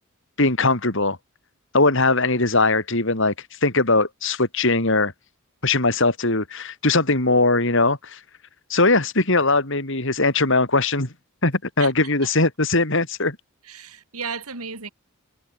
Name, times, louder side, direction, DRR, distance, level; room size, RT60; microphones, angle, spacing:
voice 1, 0.4-1.2 1.7-3.3 3.6-5.1 5.6-8.2 8.7-11.1 11.4-13.4, left 3 dB, 60° left, 4.2 m, -20 dB
voice 2, 11.8-12.1 13.6-14.9, right 5 dB, 90° right, 5.3 m, -34 dB
head